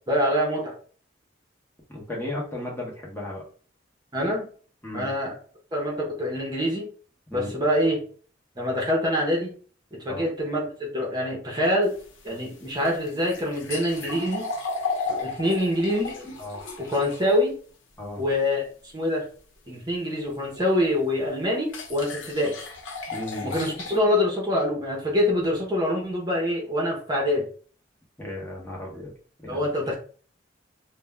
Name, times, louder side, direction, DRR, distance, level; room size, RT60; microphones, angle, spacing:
voice 1, 0.1-0.7 4.1-4.5 4.9-5.3 5.7-6.9 7.3-8.0 8.6-9.5 10.0-11.9 12.2-14.5 15.2-16.4 16.8-17.6 18.2-19.3 19.7-22.5 23.4-27.5 29.5-29.9, left 1 dB, 20° right, -2 dB, 0.8 m, -25 dB
voice 2, 1.9-3.4 4.8-5.1 7.3-7.5 10.1-10.3 16.4-16.6 18.0-18.2 23.1-23.5 28.2-29.1 29.4-29.7, left 1 dB, 10° left, -3 dB, 0.9 m, -35 dB
sound 1, 11.8-17.4 20.5-20.6 21.7-24.0, left 4 dB, 90° left, 0.6 m, -34 dB
2.5 x 2.2 x 3.2 m, 0.42 s
head